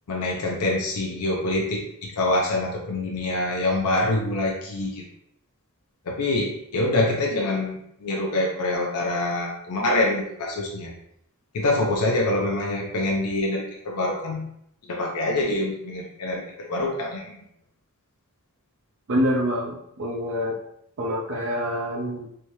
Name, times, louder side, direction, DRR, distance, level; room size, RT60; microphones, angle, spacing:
voice 1, 0.1-5.1 6.0-10.9 11.5-14.5 14.8-17.4, left 2 dB, 85° left, -1 dB, 0.6 m, -25 dB
voice 2, 19.1-20.6 21.0-22.3, equal, 60° right, -3 dB, 0.5 m, -26 dB
3.3 x 3.0 x 2.7 m, 0.74 s
head